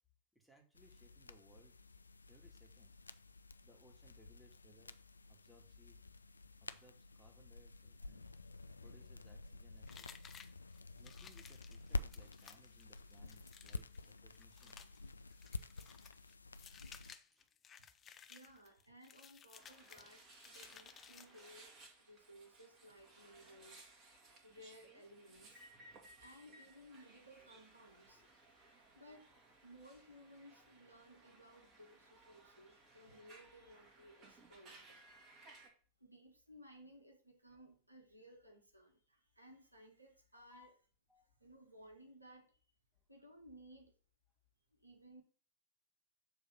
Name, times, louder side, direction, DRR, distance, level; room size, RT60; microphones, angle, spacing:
voice 1, 0.3-1.7 2.3-2.9 3.6-5.0 5.3-6.0 6.6-8.3 8.8-10.1 11.0-14.8 16.8-17.5 40.3-40.7 41.1-41.4 42.9-43.0, equal, 5° right, 1.6 m, -67 dB
sound 1, 0.7-17.1, left 3 dB, 80° left, 0.3 m, -49 dB
sound 2, 9.9-21.8, left 7 dB, 25° left, 0.5 m, -59 dB
voice 2, 18.3-23.9 24.4-25.6 26.2-35.1 36.0-40.7 41.4-42.6 43.1-43.9 44.7-45.2, equal, 85° right, 1.3 m, -60 dB
sound 3, 19.5-35.7, right 2 dB, 30° right, 1.9 m, -62 dB
7.0 x 3.2 x 5.5 m
figure-of-eight pair, 90°, 0 cm